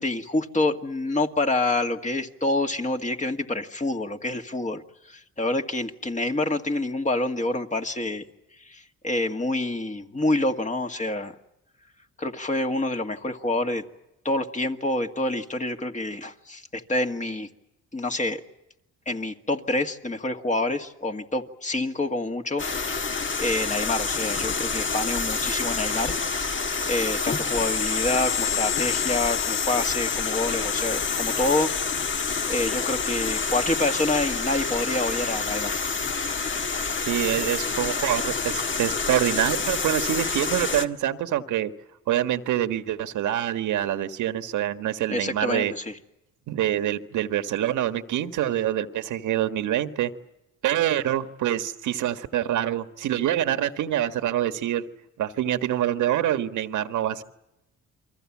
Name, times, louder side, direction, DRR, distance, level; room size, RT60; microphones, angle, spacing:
voice 1, 0.0-8.2 8.7-11.3 12.2-13.8 14.3-17.5 17.9-18.4 19.1-23.1 23.4-26.1 26.9-31.7 32.5-35.8 45.1-45.9, left 2 dB, 25° left, 5 dB, 1.9 m, -27 dB
sound 1, 22.6-40.8, left 5 dB, 40° left, 1.7 m, -27 dB
voice 2, 37.1-41.7 42.1-45.7 46.5-50.1 50.6-54.8 55.2-57.2, right 12 dB, 80° right, 9 dB, 1.7 m, -26 dB
29.0 x 23.5 x 7.4 m, 0.89 s
cardioid pair, 90°, 30 cm